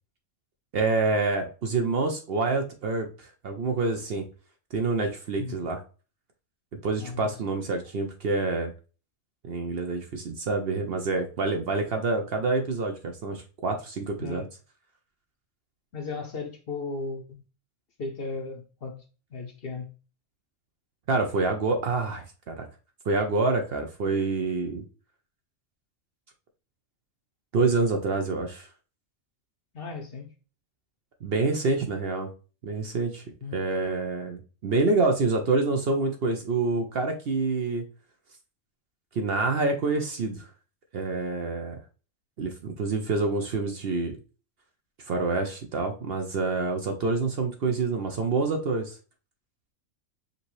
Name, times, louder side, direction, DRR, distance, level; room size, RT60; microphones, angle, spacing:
voice 1, 0.7-4.2 4.7-5.8 6.8-8.7 9.4-14.5 21.1-22.7 23.0-24.8 27.5-28.7 31.2-32.3 32.6-33.2 33.5-37.9 39.1-40.5 40.9-41.8 42.4-44.1 45.1-49.0, right 3 dB, 55° right, 0.8 m, -27 dB
voice 2, 7.0-7.3 14.2-14.5 15.9-17.4 18.0-19.0 19.3-19.9 29.7-30.3 33.4-33.6, left 3 dB, 55° left, 0.8 m, -36 dB
5.2 x 2.7 x 3.0 m
omnidirectional pair, 1.4 m